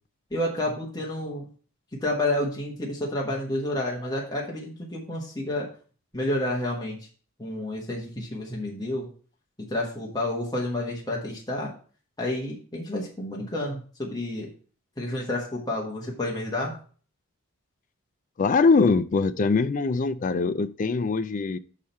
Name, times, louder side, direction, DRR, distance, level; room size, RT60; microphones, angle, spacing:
voice 1, 0.3-1.5 1.9-5.7 6.1-7.0 7.4-9.1 9.6-11.7 12.2-14.5 15.0-16.8, left 1 dB, 20° left, -2 dB, 1.2 m, -30 dB
voice 2, 18.4-21.6, left 4 dB, 35° left, 14 dB, 0.3 m, -22 dB
5.8 x 4.9 x 5.4 m, 0.41 s
head